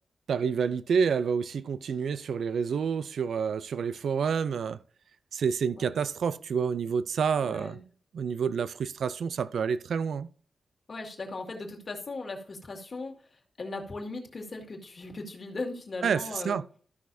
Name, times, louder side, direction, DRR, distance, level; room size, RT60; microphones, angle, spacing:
voice 1, 0.3-4.8 5.3-7.8 8.1-10.3 16.0-16.6, right 6 dB, 75° right, 0.4 m, -28 dB
voice 2, 7.4-7.8 10.9-13.1 13.6-16.6, left 3 dB, 40° left, 2.1 m, -38 dB
14.0 x 6.2 x 2.7 m
wide cardioid pair, 160°, 0 cm